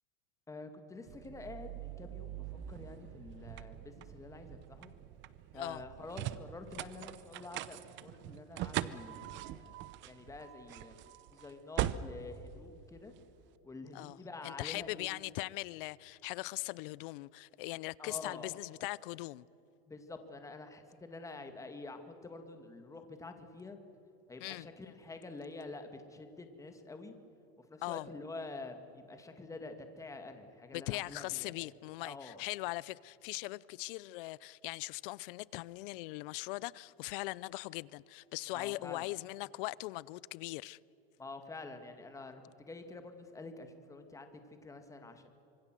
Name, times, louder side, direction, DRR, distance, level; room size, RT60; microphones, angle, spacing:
voice 1, 0.5-4.9 5.5-11.0 11.3-13.1 13.6-15.1 18.0-18.5 19.9-23.8 24.3-27.1 27.6-31.7 32.0-32.4 38.5-39.1 41.2-45.3, left 3 dB, 10° left, 2.0 m, -48 dB
sound 1, 1.1-13.4, right 13 dB, 35° right, 0.9 m, -42 dB
voice 2, 13.9-19.5 24.4-24.7 27.8-28.1 30.7-40.8, left 21 dB, 60° left, 0.6 m, -40 dB
26.0 x 23.0 x 7.7 m
supercardioid pair, 145°, 31 cm